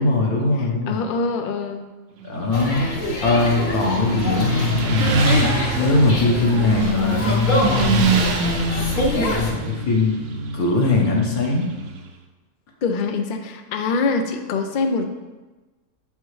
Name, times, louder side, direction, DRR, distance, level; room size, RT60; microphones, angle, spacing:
voice 1, 0.0-1.0 2.2-2.9 3.2-5.2 5.8-8.1 9.1-10.2 10.5-11.7, left 3 dB, 65° left, -1 dB, 1.6 m, -21 dB
voice 2, 0.6-1.9 12.8-15.1, left 4 dB, 90° left, 6 dB, 0.4 m, -24 dB
Motorcycle, 2.2-12.0, right 3 dB, 60° right, 0.9 m, -25 dB
sound 1, 2.5-9.5, left 1 dB, 40° left, 0.8 m, -25 dB
7.3 x 5.5 x 3.2 m, 1.2 s
omnidirectional pair, 1.7 m